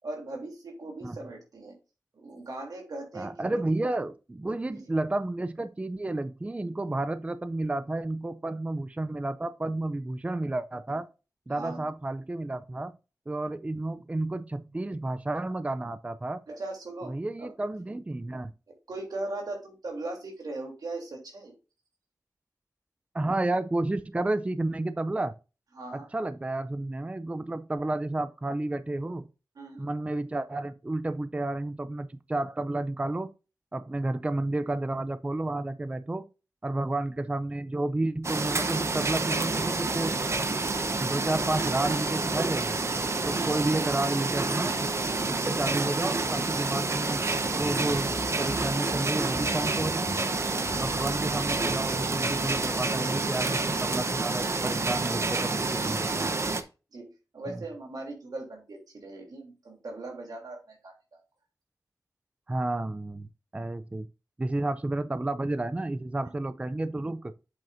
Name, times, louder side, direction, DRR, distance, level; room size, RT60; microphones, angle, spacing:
voice 1, 0.0-1.7 2.1-3.5 4.7-4.8 10.9-11.0 11.5-11.9 16.5-17.5 18.9-21.5 25.7-26.1 29.5-29.9 43.5-44.1 45.2-45.4 50.9-51.3 56.0-56.3 56.9-61.2, right 2 dB, 90° right, 3.1 m, -39 dB
voice 2, 3.1-11.0 11.5-12.9 13.3-16.4 17.0-18.5 23.1-25.3 25.9-29.3 29.8-33.3 33.7-36.3 36.6-40.1 41.0-42.8 43.3-44.8 45.3-48.1 48.4-50.1 50.7-56.3 57.5-57.6 62.5-64.1 64.4-67.3, right 2 dB, 20° right, 0.4 m, -31 dB
sound 1, 38.2-56.6, right 3 dB, 45° right, 0.8 m, -28 dB
sound 2, 47.4-53.2, left 1 dB, 70° left, 2.1 m, -44 dB
7.8 x 7.4 x 2.6 m
wide cardioid pair, 95°, 6 cm